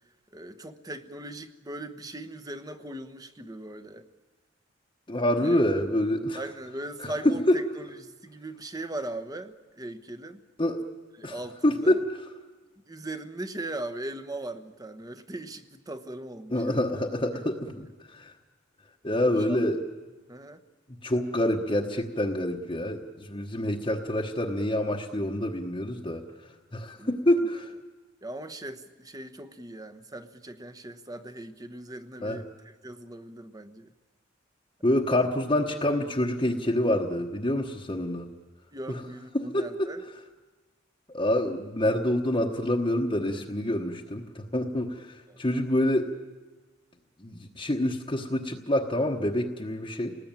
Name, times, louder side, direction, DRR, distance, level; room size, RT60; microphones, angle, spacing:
voice 1, 0.3-4.1 5.4-5.6 6.3-10.4 11.2-12.0 12.9-16.9 17.3-17.4 19.5-19.6 20.3-20.6 27.0-27.5 28.2-33.9 38.7-40.0 45.3-45.4, right 1 dB, 20° right, 10 dB, 1.1 m, -39 dB
voice 2, 5.1-6.4 7.0-7.6 10.6-10.8 11.2-11.3 11.6-12.0 16.5-17.9 18.2-18.3 19.0-19.8 21.0-23.0 23.3-26.2 26.7-27.7 32.2-32.4 34.8-38.3 38.9-39.0 39.3-39.6 41.1-45.1 45.4-46.1 47.2-50.2, left 1 dB, 25° left, -1 dB, 1.2 m, -26 dB
29.0 x 19.5 x 9.0 m, 1.3 s
head